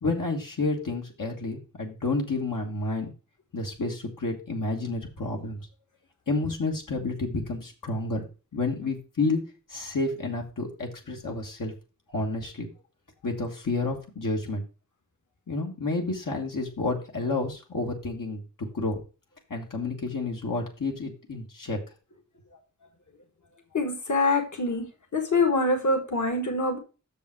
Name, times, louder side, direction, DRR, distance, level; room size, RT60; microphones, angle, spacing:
voice 1, 0.0-3.1 3.5-5.6 6.3-8.3 8.5-9.4 9.7-11.7 12.1-12.7 13.2-14.6 15.5-19.0 19.5-21.8, left 3 dB, 80° left, 0 dB, 1.7 m, -30 dB
voice 2, 23.7-24.8 25.1-26.8, left 3 dB, 65° left, 3 dB, 1.6 m, -24 dB
6.5 x 5.4 x 5.8 m, 0.33 s
wide cardioid pair, 60°, 32 cm